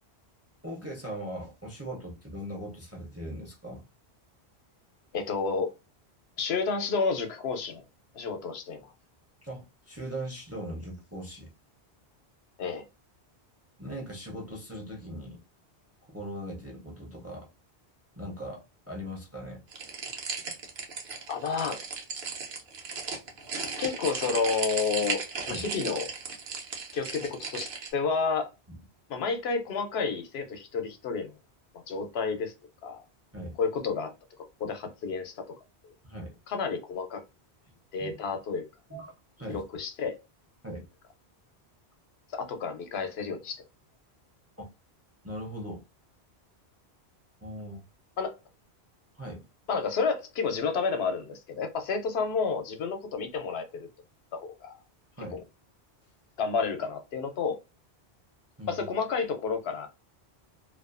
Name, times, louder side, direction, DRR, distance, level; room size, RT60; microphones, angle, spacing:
voice 1, 0.6-3.8 9.4-11.5 13.8-15.4 16.1-17.5 18.2-19.6 25.5-25.7 28.7-28.8 33.3-33.6 36.0-36.3 38.0-38.1 38.9-39.1 39.4-39.6 40.6-40.8 44.6-44.7 45.2-45.8 47.4-47.8 49.2-49.4 55.2-55.4 58.6-58.9, right 1 dB, 20° right, 0.5 m, -39 dB
voice 2, 5.1-5.7 6.4-7.8 8.1-8.9 12.6-12.8 21.3-21.8 23.8-26.1 26.9-28.5 29.1-31.3 31.9-32.5 32.8-33.0 33.6-34.1 34.6-35.4 36.5-37.2 37.9-38.6 39.5-40.2 42.3-43.6 48.2-48.3 49.7-53.9 54.3-54.8 56.4-57.6 58.7-59.9, left 5 dB, 75° left, 0.9 m, -30 dB
sound 1, 19.7-27.9, right 5 dB, 60° right, 0.8 m, -36 dB
2.4 x 2.3 x 2.4 m
omnidirectional pair, 1.1 m